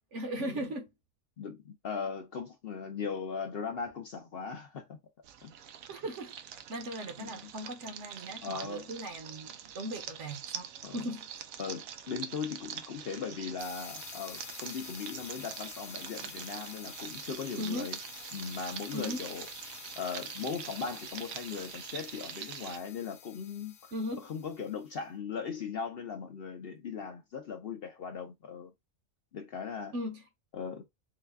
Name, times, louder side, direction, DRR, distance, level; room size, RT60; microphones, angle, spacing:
voice 1, 0.1-0.9 5.9-6.3 6.7-10.7 10.9-11.3 17.6-18.0 18.9-19.2 23.9-24.3 29.9-30.2, equal, 60° right, 1.2 m, -38 dB
voice 2, 1.4-5.0 5.4-5.5 7.2-7.5 8.4-8.9 10.8-11.0 11.6-18.0 18.3-19.5 20.0-28.7 29.3-29.9 30.5-30.9, left 6 dB, 55° left, 0.7 m, -39 dB
sound 1, 5.2-22.8, right 9 dB, 85° right, 1.0 m, -44 dB
sound 2, 13.6-24.9, left 9 dB, 85° left, 1.1 m, -49 dB
4.0 x 2.3 x 3.4 m
omnidirectional pair, 1.4 m